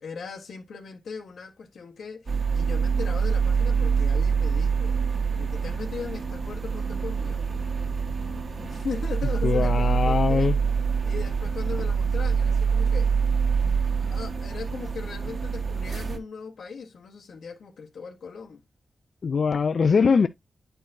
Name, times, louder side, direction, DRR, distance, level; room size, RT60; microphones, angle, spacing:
voice 1, 0.0-5.0 5.3-10.6 11.0-13.2 13.8-18.6, left 5 dB, 90° left, 1.0 m, -39 dB
sound 1, 2.3-16.2, right 6 dB, 50° right, 1.2 m, -25 dB
voice 2, 9.4-10.6 19.2-20.3, left 5 dB, 55° left, 0.4 m, -22 dB
9.9 x 4.6 x 2.5 m
wide cardioid pair, 155°, 0 cm